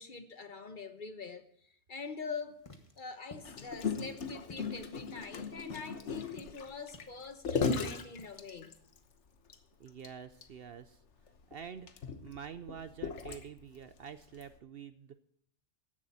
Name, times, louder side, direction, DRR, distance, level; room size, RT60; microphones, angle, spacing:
voice 1, 0.0-2.6 3.0-8.8, left 5 dB, 45° left, 1.0 m, -44 dB
sound 1, 2.5-8.4, left 2 dB, 25° left, 1.4 m, -56 dB
Gurgling, 3.4-9.0 9.5-9.6 9.9-10.1 10.4-10.5 11.3-13.8 14.4-14.6, left 5 dB, 65° left, 1.4 m, -37 dB
voice 2, 9.8-11.0 11.5-11.9 12.2-15.2, right 7 dB, 60° right, 0.7 m, -47 dB
15.0 x 11.0 x 4.2 m
omnidirectional pair, 1.3 m